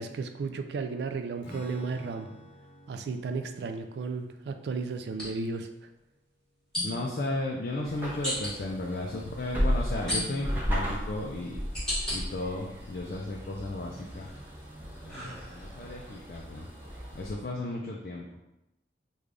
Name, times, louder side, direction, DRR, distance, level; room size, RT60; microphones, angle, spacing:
voice 1, 0.0-2.3 2.9-5.7, right 4 dB, 70° right, 7 dB, 0.3 m, -34 dB
Strum, 1.4-7.0, equal, 85° left, 0.8 m, -52 dB
sound 1, 2.3-2.5 5.1-5.3 6.7-7.2 8.2-8.5 10.1-10.6 11.2-12.2 12.7-13.4 13.9-15.9, equal, 5° left, 1.0 m, -35 dB
voice 2, 6.8-11.6 12.1-14.3 15.0-16.7 17.1-18.2, left 2 dB, 50° left, -2 dB, 0.4 m, -34 dB
sound 2, 7.8-17.3, equal, 10° right, 0.6 m, -35 dB
3.3 x 2.3 x 3.7 m, 0.91 s
head